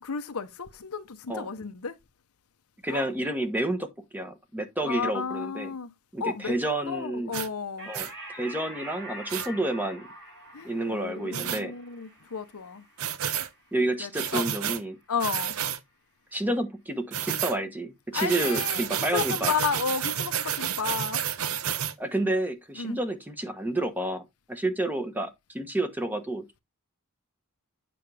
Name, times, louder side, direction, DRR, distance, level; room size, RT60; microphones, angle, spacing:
voice 1, 0.0-2.0 2.9-3.1 4.8-5.9 6.2-6.5 6.9-7.9 10.5-12.8 14.0-14.4 15.1-15.5 18.1-21.2 22.8-23.0, left 6 dB, 85° left, 0.8 m, -32 dB
voice 2, 2.8-5.7 6.1-7.3 7.9-10.1 10.6-11.8 13.7-15.0 16.3-19.5 22.0-26.6, right 1 dB, 10° right, 1.1 m, -30 dB
sound 1, 7.3-7.5 7.9-8.1 9.3-9.5 11.3-11.6 13.0-13.5 14.1-14.8 15.2-15.8 17.1-17.6 18.1-21.9, right 9 dB, 75° right, 0.7 m, -30 dB
sound 2, 7.8-14.7, right 1 dB, 55° right, 5.5 m, -45 dB
8.6 x 5.1 x 3.4 m
head